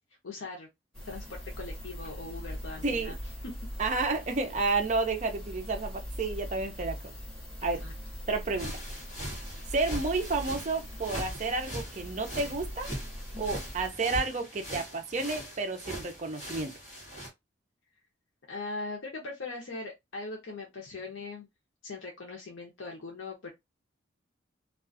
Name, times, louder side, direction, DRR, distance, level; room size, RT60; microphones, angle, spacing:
voice 1, 0.2-0.7 1.1-3.2 7.7-7.9 18.5-21.5 21.8-23.5, left 3 dB, 80° left, 0.7 m, -40 dB
sound 1, 0.9-13.9, equal, ahead, 1.0 m, -41 dB
voice 2, 2.8-3.1 3.8-7.0 7.6-7.8 8.3-8.8 9.7-12.9 13.4-16.7, right 3 dB, 35° right, 0.5 m, -31 dB
sound 2, 8.6-17.3, equal, 35° left, 1.2 m, -41 dB
2.3 x 2.3 x 2.5 m
head